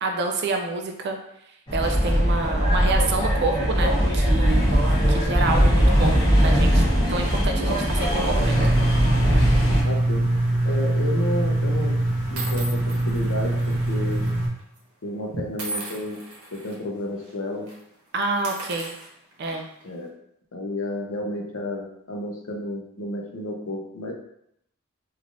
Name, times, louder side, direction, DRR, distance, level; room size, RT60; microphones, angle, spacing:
voice 1, 0.0-1.2 1.7-8.6 15.3-15.4 18.1-18.9 19.4-19.6, right 3 dB, 50° right, 3 dB, 0.3 m, -28 dB
sound 1, 1.7-9.8, equal, 20° left, 0.7 m, -20 dB
sound 2, 8.4-14.5, right 1 dB, 45° left, 1.0 m, -23 dB
voice 2, 9.8-10.3 10.6-12.0 12.3-14.3 15.0-17.7 19.8-20.1 20.5-24.1, left 1 dB, 65° left, 1 dB, 0.6 m, -31 dB
sound 3, 10.7-11.0 11.7-11.8 12.4-14.3 14.6-14.8 15.6-16.7 17.2-17.3 17.6-17.8 18.3-19.9, right 2 dB, 80° right, 0.8 m, -38 dB
3.2 x 2.4 x 2.5 m, 0.75 s
head